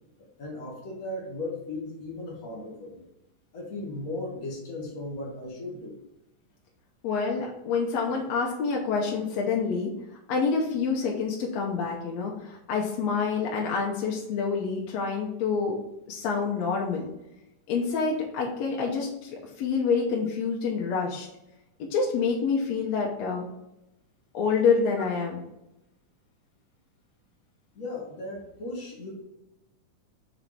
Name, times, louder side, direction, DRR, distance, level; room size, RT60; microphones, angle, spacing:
voice 1, 0.4-3.1 3.5-6.0 27.7-29.1, left 2 dB, 90° left, -2 dB, 0.7 m, -36 dB
voice 2, 7.0-9.9 10.3-15.8 16.1-17.1 17.7-21.3 21.8-23.5 24.3-25.4, left 5 dB, 70° left, -1 dB, 1.7 m, -27 dB
5.5 x 4.0 x 4.6 m, 0.91 s
omnidirectional pair, 3.8 m